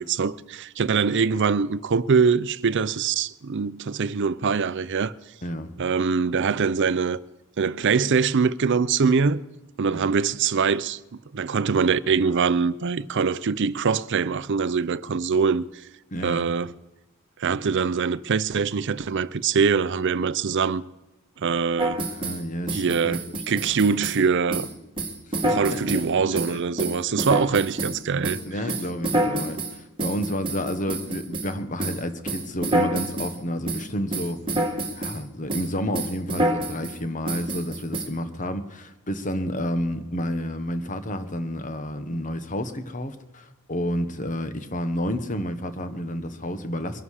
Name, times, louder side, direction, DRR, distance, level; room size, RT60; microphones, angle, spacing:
voice 1, 0.0-5.1 5.8-7.2 7.6-9.4 9.8-11.0 11.3-15.7 16.2-16.7 17.4-20.8 21.4-22.0 22.7-24.7 25.5-28.4, right 5 dB, 55° right, 0.5 m, -23 dB
voice 2, 5.4-5.7 9.9-10.1 16.1-16.5 22.0-23.2 23.5-23.8 25.3-26.6 28.4-34.4 34.9-47.0, equal, 35° left, 1.2 m, -30 dB
sound 1, 21.8-22.4 22.7-24.2 24.5-24.7 25.0-26.1 26.3-28.0 28.2-31.5 31.8-32.0 32.3-33.3 33.7-33.8 34.1-35.2 35.5-35.7 35.9-37.0 37.3-38.1, right 1 dB, 25° right, 2.0 m, -27 dB
23.5 x 11.0 x 4.9 m
head